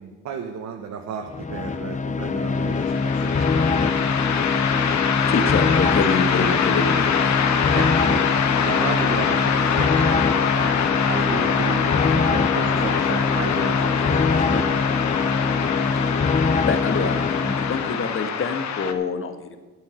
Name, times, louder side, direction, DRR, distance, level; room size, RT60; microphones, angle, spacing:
voice 1, 0.0-4.2 7.7-8.3 8.7-14.7, right 6 dB, 65° right, 2 dB, 1.2 m, -33 dB
sound 1, 1.3-18.1, left 4 dB, 25° left, 0.6 m, -23 dB
sound 2, 2.5-18.9, left 7 dB, 65° left, 1.2 m, -25 dB
voice 2, 5.3-7.4 16.7-19.6, left 4 dB, 45° left, 8 dB, 1.4 m, -26 dB
12.0 x 8.4 x 6.3 m, 1.3 s
cardioid pair, 90°, 30 cm